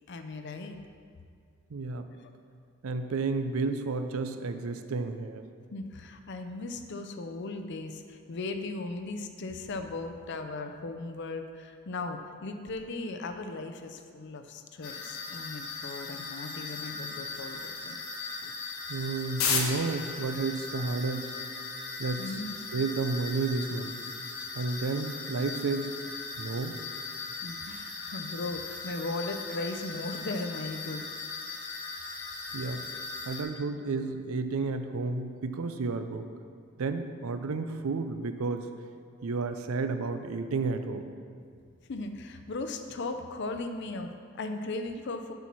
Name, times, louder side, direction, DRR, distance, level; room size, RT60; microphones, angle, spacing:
voice 1, 0.1-0.8 2.2-2.3 5.7-18.0 22.2-22.5 27.4-31.1 32.9-33.0 41.9-45.3, left 2 dB, 55° left, 7 dB, 0.5 m, -37 dB
voice 2, 1.7-2.1 2.8-5.4 18.4-18.5 18.9-21.3 22.0-22.4 22.7-23.9 24.5-25.9 26.4-26.8 32.5-32.9 33.3-36.3 36.8-38.7 39.2-41.0, right 3 dB, 90° right, 8 dB, 0.5 m, -31 dB
sound 1, 14.8-33.4, left 4 dB, 80° left, 0.9 m, -37 dB
6.9 x 4.5 x 6.0 m, 2.2 s
head